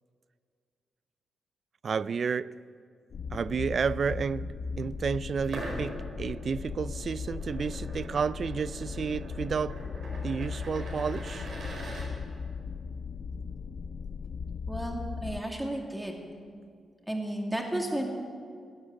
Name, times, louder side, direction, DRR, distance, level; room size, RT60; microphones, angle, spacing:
voice 1, 1.8-2.6 3.3-9.8 10.2-11.5, right 6 dB, 50° right, 0.3 m, -31 dB
sound 1, 3.1-15.4, left 5 dB, 55° left, 0.6 m, -37 dB
sound 2, 5.4-12.1, right 1 dB, 65° right, 4.8 m, -42 dB
voice 2, 14.7-16.2 17.1-18.1, right 1 dB, 5° right, 2.4 m, -33 dB
16.0 x 11.0 x 7.8 m
cardioid pair, 110°, 0 cm